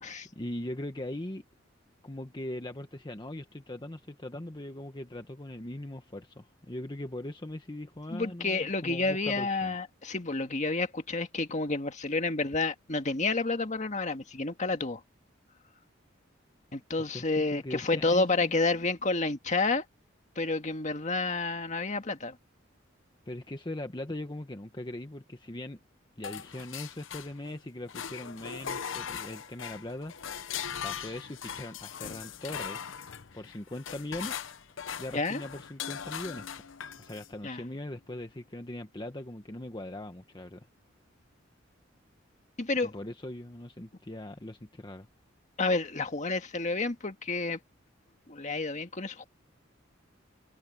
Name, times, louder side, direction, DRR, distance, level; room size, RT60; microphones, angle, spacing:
voice 1, 0.4-1.4 2.0-9.7 17.0-18.5 23.3-25.8 26.2-30.1 30.8-33.0 33.3-34.4 35.0-36.5 37.0-40.7 42.8-45.1, left 1 dB, 25° left, 1.1 m, -40 dB
voice 2, 8.1-15.0 16.7-19.8 20.4-22.4 35.1-35.4 37.4-37.6 42.6-42.9 45.6-47.6 48.3-49.2, left 3 dB, 40° left, 1.8 m, -30 dB
sound 1, 26.2-27.6 27.9-37.3, left 8 dB, 80° left, 0.8 m, -40 dB
head